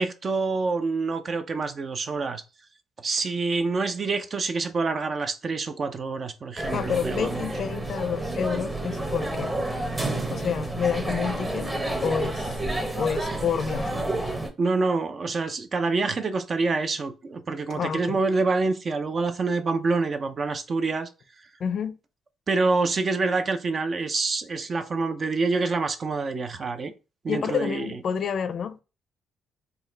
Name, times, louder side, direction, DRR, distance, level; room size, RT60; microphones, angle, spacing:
voice 1, 0.0-2.4 3.0-7.5 14.6-21.1 22.5-26.9 27.2-28.0, right 3 dB, 40° right, 0.6 m, -26 dB
sound 1, 6.6-14.5, right 2 dB, 15° right, 1.0 m, -30 dB
voice 2, 6.7-9.5 10.1-11.7 12.0-12.6 12.9-14.0 17.7-18.2 21.6-21.9 27.3-28.8, left 7 dB, 55° left, 0.5 m, -29 dB
4.1 x 2.3 x 3.8 m
cardioid pair, 90°, 0 cm